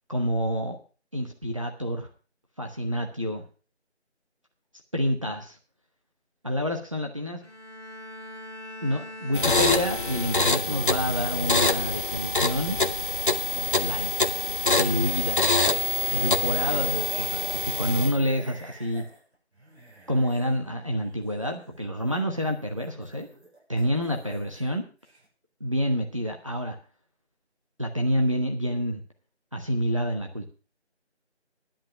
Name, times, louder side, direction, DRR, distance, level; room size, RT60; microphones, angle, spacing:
voice 1, 0.1-0.8 1.1-2.1 2.6-3.4 4.9-5.6 6.4-7.4 8.8-12.8 13.5-14.3 14.8-15.5 16.1-19.0 20.1-23.3 23.7-24.8 25.6-26.8 27.8-29.0 29.5-30.5, equal, 30° right, 2 dB, 1.0 m, -28 dB
Bowed string instrument, 7.4-11.0 11.4-11.8, left 1 dB, 20° left, 1.8 m, -42 dB
sound 1, 9.3-18.3, left 2 dB, 45° left, 0.8 m, -25 dB
sound 2, 14.6-24.8 25.0-25.3, right 1 dB, 65° right, 7.3 m, -50 dB
10.5 x 9.3 x 6.0 m, 0.37 s
figure-of-eight pair, 170°, 35 cm